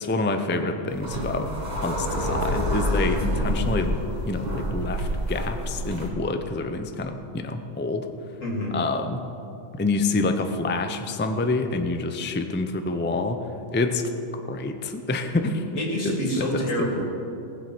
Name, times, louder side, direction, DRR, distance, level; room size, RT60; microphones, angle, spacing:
voice 1, 0.0-4.0 4.3-8.1 8.7-9.2 9.7-13.4 13.7-14.1 14.5-15.8 16.0-16.9, left 3 dB, 15° left, 7 dB, 0.5 m, -27 dB
sound 1, 0.9-6.1, equal, 35° right, 1.9 m, -27 dB
voice 2, 8.4-8.8 15.8-17.0, equal, 80° left, -1 dB, 2.9 m, -27 dB
18.5 x 7.7 x 6.1 m, 2.7 s
omnidirectional pair, 1.3 m